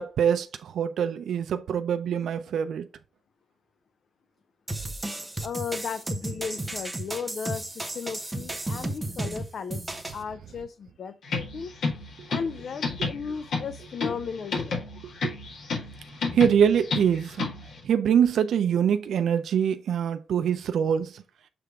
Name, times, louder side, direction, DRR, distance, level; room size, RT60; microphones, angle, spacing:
voice 1, 0.0-2.9 15.2-15.3 16.3-17.5 17.8-21.2, right 8 dB, 80° right, 0.5 m, -24 dB
sound 1, 4.7-10.2, right 2 dB, 10° right, 0.9 m, -33 dB
voice 2, 5.4-11.7 12.3-14.8, left 6 dB, 50° left, 0.5 m, -35 dB
sound 2, 11.2-17.8, left 4 dB, 85° left, 1.7 m, -32 dB
6.7 x 3.4 x 4.6 m
wide cardioid pair, 170°, 0 cm